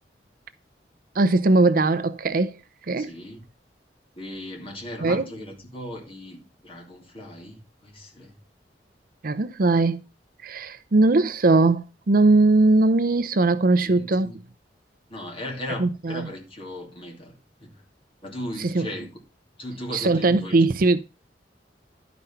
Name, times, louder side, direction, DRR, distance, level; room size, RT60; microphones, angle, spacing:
voice 1, 1.1-2.6 2.9-3.1 5.0-5.3 9.2-10.0 10.4-14.3 15.8-16.3 18.6-18.9 19.9-21.0, right 2 dB, 55° right, 0.6 m, -20 dB
voice 2, 3.0-3.4 4.2-8.3 13.8-14.4 15.1-17.3 17.6-17.8 18.2-19.1 19.6-20.7, left 1 dB, 30° left, 2.8 m, -37 dB
11.5 x 5.3 x 5.6 m
head